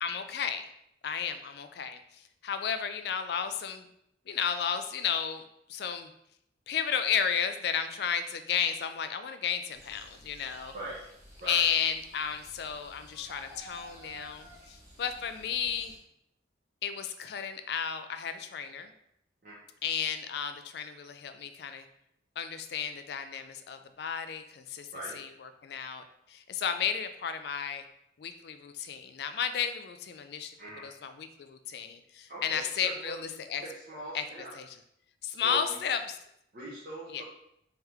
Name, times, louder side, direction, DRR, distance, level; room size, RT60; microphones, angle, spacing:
voice 1, 0.0-0.6 1.0-3.8 4.3-5.4 5.7-6.1 6.7-10.7 11.5-15.9 16.8-18.9 19.8-21.8 22.4-24.9 25.1-27.8 28.2-30.5 30.8-33.6 34.1-34.2 34.6-34.7 35.2-36.2 37.1-37.2, left 7 dB, 60° left, 9 dB, 0.3 m, -33 dB
sound 1, 9.7-16.0, right 1 dB, 15° right, 0.9 m, -52 dB
voice 2, 32.3-33.2 33.6-34.5 35.3-35.8 36.5-37.2, right 1 dB, 50° right, -9 dB, 0.9 m, -41 dB
3.5 x 2.9 x 3.3 m, 0.75 s
head